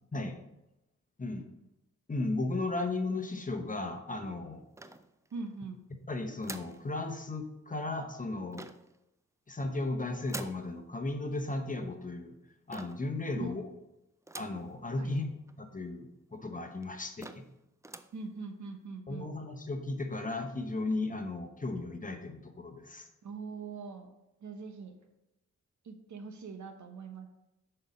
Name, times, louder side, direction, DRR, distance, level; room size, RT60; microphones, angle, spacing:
voice 1, 2.1-4.6 6.1-8.7 9.5-12.3 12.7-13.6 14.3-15.3 15.6-17.4 19.1-23.1, left 2 dB, 25° left, 5 dB, 0.9 m, -35 dB
sound 1, 4.8-5.5 6.4-6.8 8.5-9.0 10.3-10.7 12.7-13.1 14.3-14.7 15.2-15.3 15.5-15.6 16.3-16.4 16.8-16.9 17.2-17.5 17.8-18.2, right 2 dB, 10° right, 0.3 m, -45 dB
voice 2, 5.3-5.8 13.3-13.5 15.0-15.1 18.1-19.3 23.2-24.1 24.4-25.0 25.8-27.3, right 4 dB, 70° right, 6 dB, 0.9 m, -42 dB
6.2 x 4.3 x 5.3 m, 0.92 s
cardioid pair, 80°, 30 cm